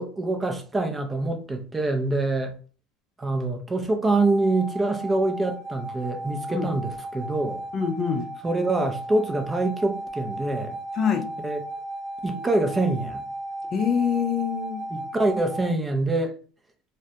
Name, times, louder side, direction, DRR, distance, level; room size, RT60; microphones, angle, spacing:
voice 1, 0.0-2.5 3.2-7.6 8.4-10.8 11.4-11.6 12.2-13.2 14.9-16.3, right 2 dB, 15° right, 0.5 m, -25 dB
sound 1, 4.0-15.7, right 1 dB, 65° right, 0.6 m, -35 dB
voice 2, 7.7-8.3 10.9-11.3 13.7-14.9, left 7 dB, 35° left, 0.4 m, -25 dB
2.1 x 2.1 x 2.7 m
supercardioid pair, 115°, 0 cm